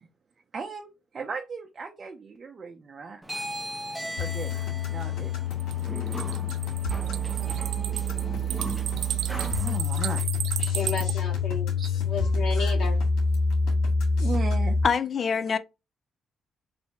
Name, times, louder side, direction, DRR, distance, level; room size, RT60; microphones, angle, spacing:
voice 1, 0.5-3.2 4.2-5.3 7.4-7.9 9.5-10.3 11.8-11.9 12.6-12.7 14.2-14.8, right 5 dB, 40° right, 0.7 m, -37 dB
sound 1, 3.2-9.8, right 1 dB, 5° right, 0.9 m, -38 dB
sound 2, 4.2-14.8, left 3 dB, 85° left, 1.8 m, -27 dB
sound 3, 5.6-11.1, right 12 dB, 85° right, 0.3 m, -34 dB
voice 2, 10.6-11.7 12.0-13.0, left 4 dB, 65° left, 1.8 m, -33 dB
voice 3, 14.8-15.6, left 6 dB, 45° left, 0.5 m, -24 dB
3.4 x 2.7 x 4.2 m
cardioid pair, 90°, 0 cm